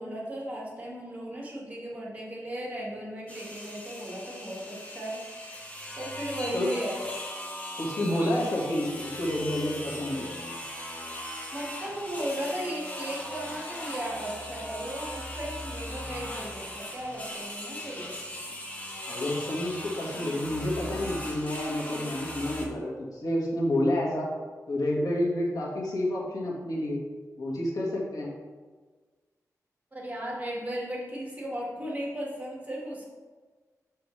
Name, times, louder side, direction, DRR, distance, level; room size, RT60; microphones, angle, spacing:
voice 1, 0.0-5.2 6.0-7.1 11.5-18.2 29.9-33.1, right 1 dB, 25° right, -3 dB, 2.0 m, -36 dB
sound 1, 3.3-22.7, left 1 dB, 25° left, 1.3 m, -39 dB
voice 2, 7.8-10.2 19.1-24.3 24.7-27.0 27.4-28.3, left 1 dB, 75° left, -3 dB, 1.8 m, -29 dB
7.0 x 6.7 x 3.3 m, 1.4 s
wide cardioid pair, 90°, 6 cm